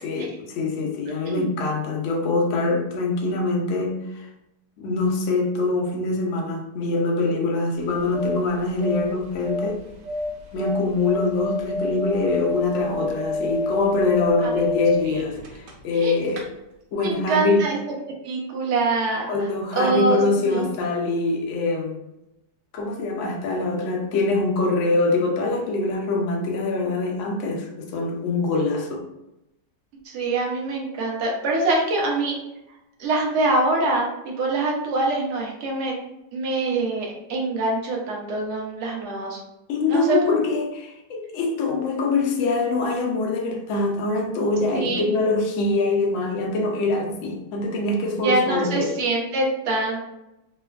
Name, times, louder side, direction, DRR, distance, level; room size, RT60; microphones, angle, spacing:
voice 1, 0.0-4.3 4.8-9.8 10.5-16.5 16.9-17.6 19.3-22.0 22.7-29.0 39.7-48.9, left 3 dB, 85° left, 2 dB, 0.6 m, -24 dB
sound 1, 7.8-16.0 16.3-16.4, left 2 dB, 85° right, 1.3 m, -29 dB
voice 2, 17.0-17.9 18.2-19.5 19.8-20.6 30.0-32.4 33.0-36.0 36.3-39.4 39.9-40.2 44.7-45.0 48.2-50.0, right 2 dB, 65° right, -2 dB, 0.7 m, -24 dB
3.2 x 2.1 x 2.2 m, 0.90 s
omnidirectional pair, 1.9 m